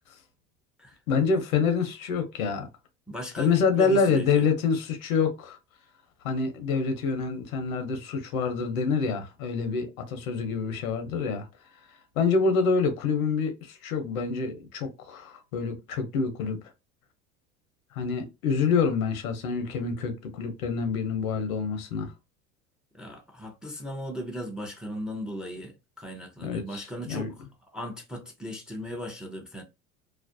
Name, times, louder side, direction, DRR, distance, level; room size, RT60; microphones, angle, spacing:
voice 1, 1.1-2.7 3.4-5.6 6.2-11.5 12.2-16.6 17.9-22.1 26.4-27.3, left 5 dB, 85° left, 0.7 m, -27 dB
voice 2, 3.1-4.4 22.9-27.3 27.7-29.6, equal, ahead, 0.5 m, -37 dB
2.4 x 2.0 x 2.5 m
hypercardioid pair, 85°, 41 cm